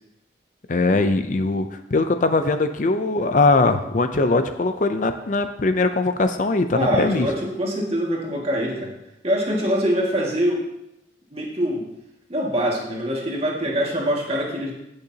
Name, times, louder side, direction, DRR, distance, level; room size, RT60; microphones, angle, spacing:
voice 1, 0.7-7.3, left 3 dB, 45° left, 8 dB, 0.5 m, -21 dB
voice 2, 6.7-8.9 9.2-10.6 11.3-11.9 12.3-14.7, equal, 35° right, -2 dB, 2.0 m, -24 dB
16.5 x 6.6 x 2.8 m, 0.87 s
head